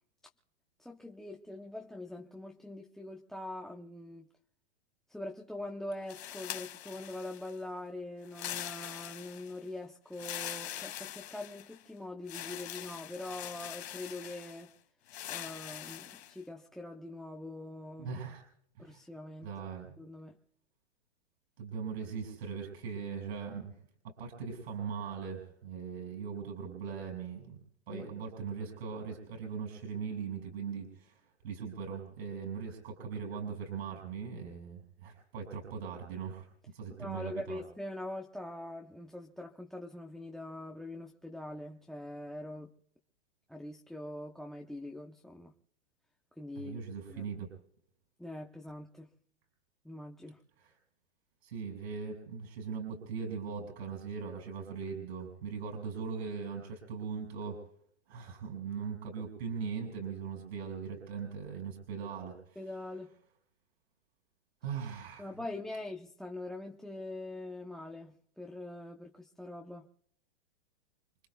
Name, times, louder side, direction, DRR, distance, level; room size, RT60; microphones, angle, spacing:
voice 1, 0.8-4.3 5.1-14.7 15.3-18.1 18.8-19.5 20.0-20.4 27.9-28.2 37.0-42.7 43.5-45.5 46.4-46.8 47.1-47.3 48.2-49.1 49.8-50.4 62.6-63.1 65.2-69.9, left 1 dB, ahead, 0.8 m, -43 dB
sound 1, 6.1-7.6 8.3-9.6 10.1-11.8 12.3-14.7 15.1-16.3, left 12 dB, 65° left, 2.0 m, -43 dB
voice 2, 18.0-18.4 18.8-19.0 19.4-20.0 21.6-23.7 24.0-36.5 36.7-37.6 46.6-47.5 50.6-50.7 51.4-57.6 58.1-62.6 64.6-65.3, right 6 dB, 65° right, 5.8 m, -40 dB
29.5 x 21.0 x 2.3 m
hypercardioid pair, 135°, 34 cm